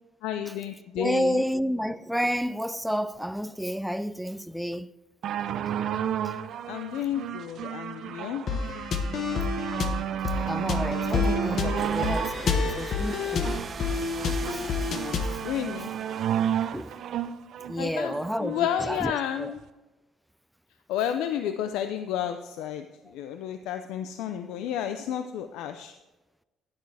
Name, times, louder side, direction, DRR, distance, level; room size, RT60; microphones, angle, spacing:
voice 1, 0.2-1.4 6.7-8.4 15.4-15.9 17.8-18.1 18.4-19.6 20.9-22.9 23.1-26.0, left 10 dB, 85° left, 0.5 m, -31 dB
voice 2, 1.0-4.9 10.5-13.6 14.5-14.9 16.7-17.0 17.7-19.5, equal, ahead, 0.4 m, -30 dB
sound 1, 5.2-18.8 19.6-19.7, right 10 dB, 65° right, 0.6 m, -32 dB
sound 2, 8.5-15.4, left 5 dB, 50° left, 1.1 m, -29 dB
sound 3, 11.8-17.3, right 5 dB, 35° right, 0.8 m, -40 dB
11.0 x 10.5 x 3.4 m
cardioid pair, 105°, 0 cm